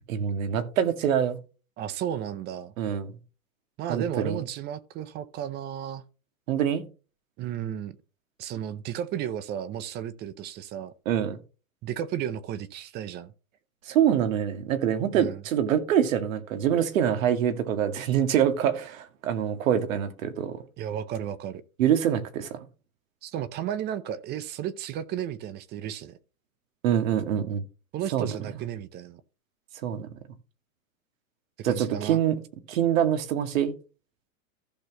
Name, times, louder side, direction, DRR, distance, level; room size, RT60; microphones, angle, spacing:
voice 1, 0.1-1.4 2.8-3.1 3.9-4.4 6.5-6.8 11.1-11.4 13.9-20.6 21.8-22.6 26.8-27.6 28.1-28.3 29.8-30.1 31.6-32.4 32.7-33.7, right 9 dB, 70° right, 2.1 m, -25 dB
voice 2, 1.8-2.7 3.8-6.0 7.4-7.9 8.4-10.9 11.8-13.3 15.1-15.4 20.8-21.6 23.2-26.2 27.9-29.2 31.6-32.2, right 10 dB, 25° right, 0.6 m, -33 dB
15.0 x 6.1 x 2.9 m
hypercardioid pair, 140°, 42 cm